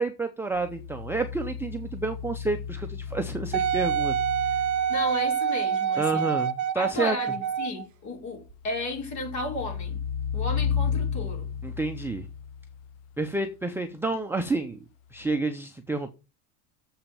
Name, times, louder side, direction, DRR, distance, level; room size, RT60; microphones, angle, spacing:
voice 1, 0.0-4.2 6.0-7.2 11.6-12.3 13.2-14.8 15.1-16.1, right 3 dB, 5° right, 0.6 m, -29 dB
sound 1, 0.5-5.2 8.5-13.2 15.2-15.3, left 7 dB, 55° left, 0.7 m, -33 dB
Wind instrument woodwind instrument, 3.5-7.8 8.5-8.6, right 9 dB, 40° right, 0.9 m, -26 dB
voice 2, 4.9-6.3 6.7-10.0 10.3-11.5, left 2 dB, 40° left, 4.6 m, -34 dB
7.4 x 5.6 x 6.9 m
supercardioid pair, 135°, 45 cm